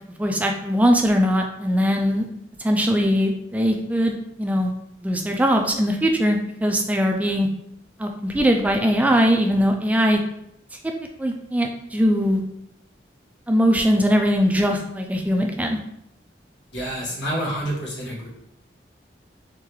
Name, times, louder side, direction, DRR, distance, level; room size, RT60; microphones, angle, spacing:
voice 1, 0.2-2.2 2.6-4.7 5.0-7.5 8.0-10.2 11.2-12.4 13.5-15.8, equal, 10° right, 3 dB, 0.3 m, -20 dB
voice 2, 16.7-18.3, equal, 80° left, -3 dB, 1.3 m, -28 dB
3.7 x 3.2 x 3.0 m, 0.77 s
head